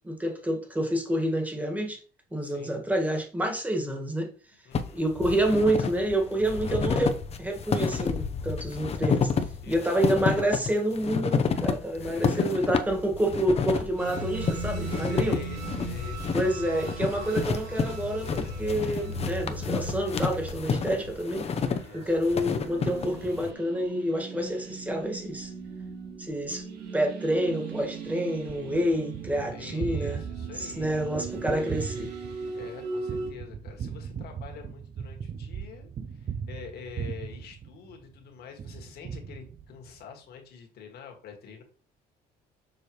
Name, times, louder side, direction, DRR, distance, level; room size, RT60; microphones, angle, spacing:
voice 1, 0.0-2.0 2.3-4.3 4.9-9.3 9.7-15.4 16.3-21.5 21.9-25.5 26.2-26.6 26.9-30.2 30.6-32.1, right 1 dB, 10° right, 1.9 m, -28 dB
voice 2, 2.4-2.8 4.7-5.0 9.6-10.0 12.0-12.8 15.0-16.2 21.7-22.2 29.5-31.0 32.5-41.6, left 6 dB, 70° left, 2.1 m, -46 dB
sound 1, 4.7-23.5, left 5 dB, 40° left, 0.8 m, -30 dB
sound 2, 14.0-33.3, right 3 dB, 85° right, 2.7 m, -39 dB
Gunshot gunfire, 28.5-38.2 38.6-40.0, right 7 dB, 40° right, 0.5 m, -38 dB
6.9 x 5.0 x 3.2 m
cardioid pair, 110°, 17 cm